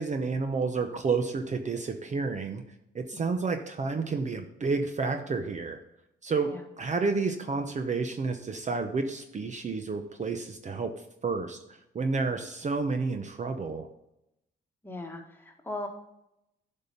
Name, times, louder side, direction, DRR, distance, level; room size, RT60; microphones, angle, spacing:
voice 1, 0.0-2.6 2.9-5.8 6.2-6.5 6.8-10.9 11.2-11.6 11.9-13.9, right 4 dB, 35° right, 6 dB, 0.9 m, -30 dB
voice 2, 3.1-3.5 6.5-6.6 14.8-15.9, left 2 dB, 10° left, 2 dB, 1.8 m, -39 dB
10.5 x 5.5 x 5.4 m, 0.85 s
cardioid pair, 90°, 20 cm